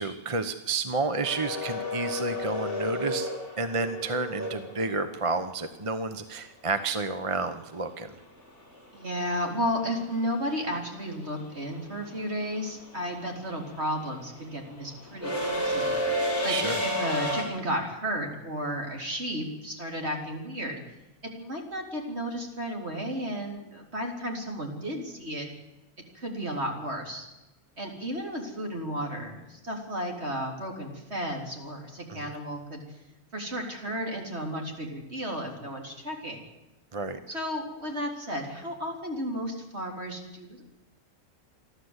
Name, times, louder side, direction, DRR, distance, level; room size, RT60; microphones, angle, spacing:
voice 1, 0.0-3.3 3.6-8.1 16.4-16.8 32.1-32.3 36.9-37.2, right 3 dB, 25° right, 9 dB, 0.8 m, -30 dB
sound 1, 1.2-5.3 7.7-7.8 9.1-9.4 9.6-17.4, left 1 dB, 10° right, 5.3 m, -31 dB
voice 2, 8.9-16.5 16.8-20.8 21.4-25.5 26.1-27.3 27.8-32.8 33.3-36.4 37.3-40.6, equal, 45° right, 1 dB, 4.0 m, -33 dB
29.0 x 12.0 x 8.1 m, 1.0 s
omnidirectional pair, 1.6 m